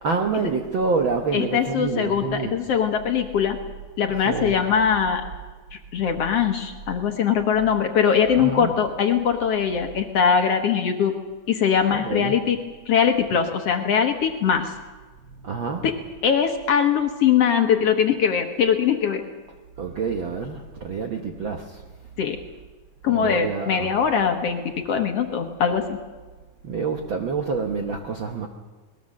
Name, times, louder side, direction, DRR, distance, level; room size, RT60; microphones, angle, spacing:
voice 1, 0.0-2.6 4.2-4.6 8.4-8.7 11.9-12.4 15.4-15.8 19.8-21.8 23.1-23.9 26.6-28.5, right 4 dB, 60° right, 3 dB, 1.3 m, -27 dB
voice 2, 1.3-3.6 4.0-5.2 5.7-11.2 11.5-12.6 12.9-14.7 15.8-15.9 16.2-19.2 22.2-22.4 23.0-24.6 24.9-26.0, left 7 dB, 60° left, 5 dB, 1.9 m, -21 dB
21.0 x 20.0 x 6.4 m, 1.3 s
omnidirectional pair, 3.6 m